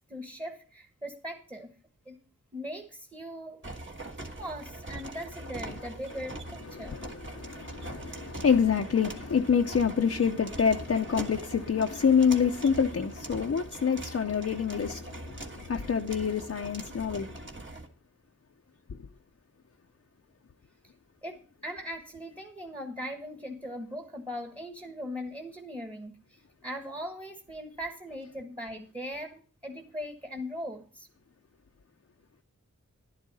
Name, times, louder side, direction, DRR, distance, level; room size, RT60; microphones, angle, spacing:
voice 1, 0.1-1.7 2.0-2.1 2.5-3.6 4.4-7.0 21.2-31.1, equal, 15° right, 1.4 m, -40 dB
sound 1, 3.6-17.9, right 2 dB, 40° right, 1.6 m, -42 dB
voice 2, 6.7-17.3, left 6 dB, 55° left, 0.6 m, -27 dB
11.5 x 11.0 x 4.1 m
wide cardioid pair, 80°, 29 cm